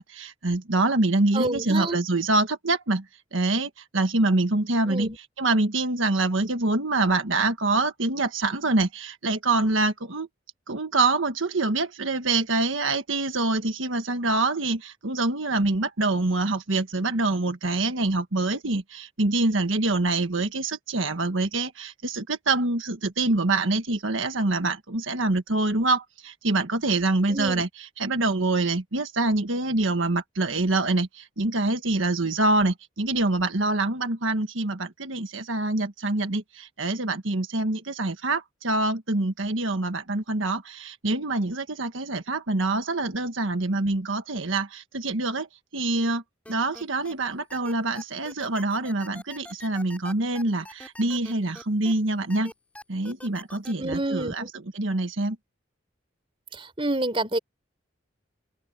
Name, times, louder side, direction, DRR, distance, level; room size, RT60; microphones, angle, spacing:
voice 1, 0.0-3.0 3.3-5.1 5.4-10.3 10.7-45.5 45.7-46.2 46.5-52.5 52.9-54.5 54.7-55.4, right 2 dB, 85° right, 1.5 m, -25 dB
voice 2, 1.3-2.0 4.9-5.2 27.3-27.6 53.8-54.5 56.5-57.4, right 2 dB, 25° right, 3.8 m, -28 dB
sound 1, 46.4-47.1 47.5-51.9 52.3-53.7, left 1 dB, 5° left, 5.8 m, -43 dB
open air
head